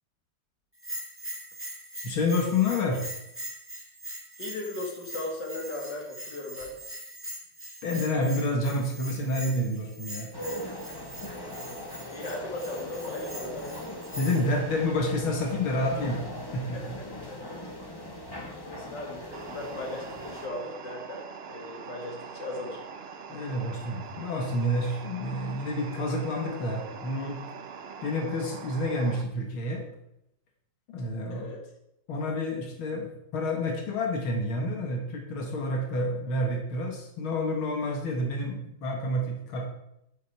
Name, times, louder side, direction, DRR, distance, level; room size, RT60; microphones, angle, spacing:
Bell, 0.8-14.5, right 1 dB, 5° right, 1.5 m, -42 dB
voice 1, 2.0-3.0 7.8-10.3 14.2-16.3 16.5-16.8 23.3-27.4 28.0-29.8 30.9-31.5 32.1-39.7, left 1 dB, 85° left, 1 dB, 2.4 m, -29 dB
voice 2, 4.4-6.8 10.6-11.0 12.0-13.7 16.7-17.6 17.9-18.3 18.6-22.8 31.3-31.6, left 2 dB, 60° left, 1 dB, 2.6 m, -38 dB
sound 1, 10.3-20.5, left 1 dB, 15° left, 1.0 m, -40 dB
sound 2, 19.3-29.2, right 6 dB, 80° right, 0.5 m, -43 dB
9.4 x 9.4 x 4.7 m, 0.81 s
omnidirectional pair, 2.2 m